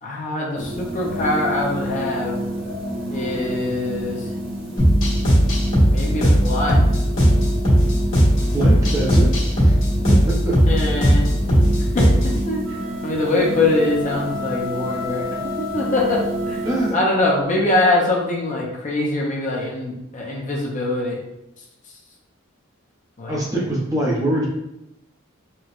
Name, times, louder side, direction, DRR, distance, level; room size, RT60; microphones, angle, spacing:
voice 1, 0.0-2.4 3.1-4.3 5.9-6.8 10.7-11.2 11.9-15.2 15.6-16.6 16.9-21.2 23.2-23.7, left 2 dB, 40° left, -2 dB, 0.5 m, -23 dB
sound 1, 0.6-16.9, equal, 90° right, 1.0 m, -30 dB
sound 2, 4.8-12.4, equal, 80° left, 1.4 m, -17 dB
voice 2, 8.5-9.3 9.6-9.8 10.1-10.6 16.6-16.9 23.3-24.5, right 1 dB, 15° right, -4 dB, 0.6 m, -23 dB
sound 3, 12.6-17.1, left 2 dB, 60° right, 1.0 m, -32 dB
4.3 x 2.1 x 2.4 m, 0.90 s
head